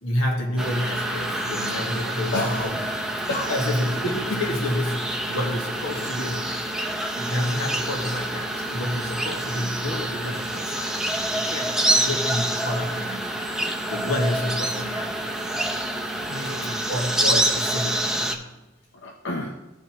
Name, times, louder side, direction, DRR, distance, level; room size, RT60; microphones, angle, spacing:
voice 1, 0.0-2.7 3.5-6.6 7.1-11.0 11.3-13.2 13.9-15.5 16.9-18.5, left 1 dB, 75° left, 0 dB, 1.8 m, -29 dB
sound 1, 0.6-18.3, right 1 dB, 5° right, 0.6 m, -27 dB
voice 2, 2.0-2.8 3.3-3.5 16.3-16.9 18.9-19.6, left 2 dB, 55° left, 0 dB, 0.7 m, -30 dB
14.0 x 5.2 x 3.0 m, 1.1 s
head